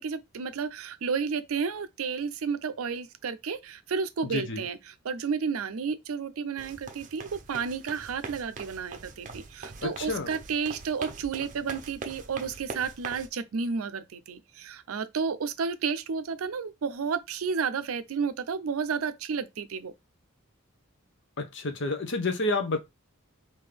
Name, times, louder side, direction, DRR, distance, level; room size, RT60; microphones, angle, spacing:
voice 1, 0.0-19.9, right 5 dB, 90° right, 0.5 m, -32 dB
voice 2, 4.2-4.7 9.8-10.3 21.4-22.8, left 2 dB, 60° left, 0.8 m, -29 dB
sound 1, 6.6-13.3, right 4 dB, 40° right, 0.6 m, -43 dB
3.6 x 2.7 x 3.3 m
head